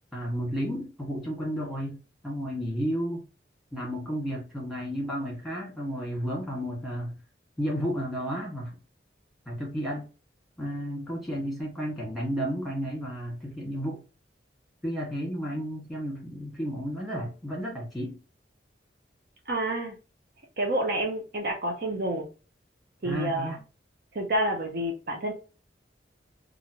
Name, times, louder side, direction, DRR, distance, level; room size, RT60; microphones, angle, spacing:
voice 1, 0.1-3.3 3.7-7.1 7.6-8.8 9.4-10.1 10.6-14.0 14.8-18.2 23.0-23.6, equal, ahead, 1.5 m, -32 dB
voice 2, 19.5-20.0 20.6-22.3 23.0-23.5 24.1-25.3, right 1 dB, 55° right, 0.7 m, -28 dB
3.1 x 2.5 x 2.8 m
head